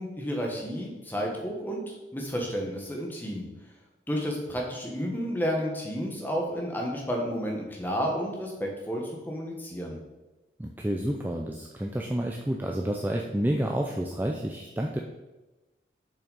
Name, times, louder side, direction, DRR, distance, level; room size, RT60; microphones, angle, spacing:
voice 1, 0.0-3.5 4.1-10.0, equal, 10° left, 0 dB, 1.2 m, -31 dB
voice 2, 10.6-15.0, right 1 dB, 10° right, 0 dB, 0.4 m, -29 dB
7.1 x 5.6 x 4.1 m, 1.1 s
head